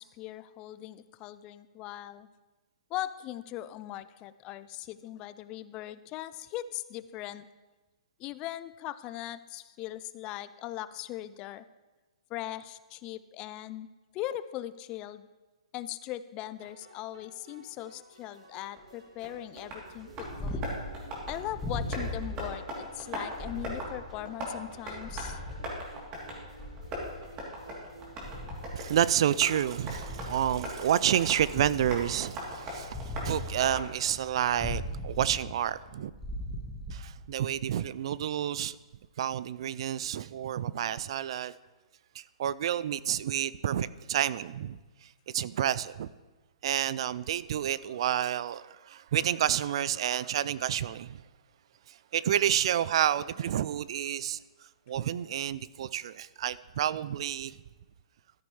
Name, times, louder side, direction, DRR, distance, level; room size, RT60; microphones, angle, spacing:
voice 1, 0.0-2.3 2.9-7.5 8.2-11.6 12.3-13.9 14.1-15.3 15.7-20.6 21.3-25.4, left 14 dB, 25° left, 0.4 m, -39 dB
sound 1, 16.6-32.5, right 2 dB, 80° right, 2.3 m, -54 dB
Tap, 18.8-34.3, right 1 dB, 25° right, 3.0 m, -41 dB
Purr, 19.9-37.6, left 1 dB, 5° left, 1.4 m, -40 dB
voice 2, 28.7-36.1 36.9-38.8 39.2-41.5 42.1-45.1 45.3-46.1 46.6-51.2 51.9-54.4 54.9-57.6, right 10 dB, 55° right, 0.4 m, -29 dB
13.0 x 9.7 x 3.2 m
hypercardioid pair, 150°, 3 cm